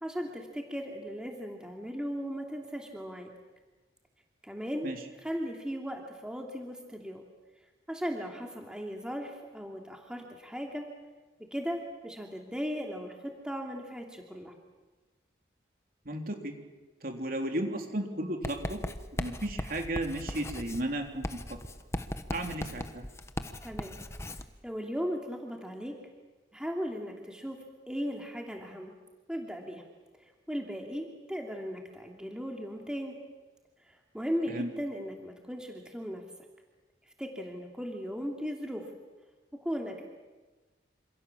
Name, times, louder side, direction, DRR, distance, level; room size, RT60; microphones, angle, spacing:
voice 1, 0.0-3.3 4.4-4.9 5.2-7.2 7.9-10.9 11.5-14.5 23.6-23.9 24.6-26.0 26.5-27.6 27.9-28.9 29.3-29.8 30.5-33.1 33.9-36.2 37.2-38.9 39.6-40.0, equal, 5° right, 1 dB, 2.8 m, -37 dB
voice 2, 16.1-16.5 17.0-18.8 19.1-21.6 22.3-23.1 34.5-34.7, right 1 dB, 50° right, 3 dB, 3.7 m, -34 dB
Writing, 18.4-24.5, left 1 dB, 15° left, 1.2 m, -38 dB
27.5 x 27.5 x 7.3 m, 1.2 s
head